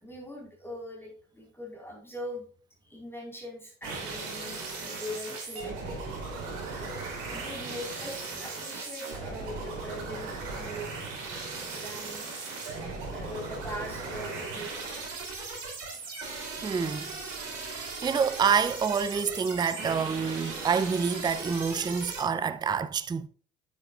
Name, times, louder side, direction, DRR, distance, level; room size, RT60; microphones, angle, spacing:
voice 1, 0.0-2.5 2.9-6.0 6.8-6.9 7.3-11.0 11.7-12.2 12.5-12.6 13.1-15.0, equal, 5° left, 4.0 m, -41 dB
sound 1, 3.8-22.2, right 3 dB, 70° right, 3.2 m, -38 dB
voice 2, 16.6-17.1 17.7-23.3, right 6 dB, 10° right, 0.5 m, -27 dB
8.8 x 8.4 x 2.4 m
hypercardioid pair, 60°, 38 cm